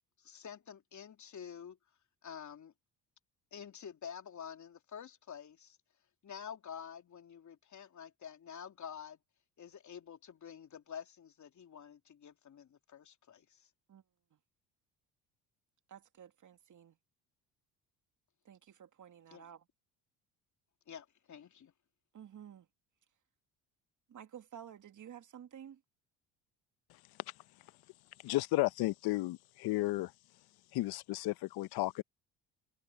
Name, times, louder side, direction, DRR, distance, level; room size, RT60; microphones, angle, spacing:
voice 1, 0.2-1.8 2.2-2.7 3.5-5.8 6.2-9.2 9.6-13.7 19.3-19.5 20.9-21.7, left 8 dB, 45° left, 3.4 m, -49 dB
voice 2, 15.9-17.0 18.4-19.6 22.1-22.7 24.1-25.8, right 9 dB, 50° right, 2.6 m, -52 dB
voice 3, 28.2-30.1 30.7-32.0, left 18 dB, 70° left, 0.9 m, -33 dB
supercardioid pair, 70°, 40 cm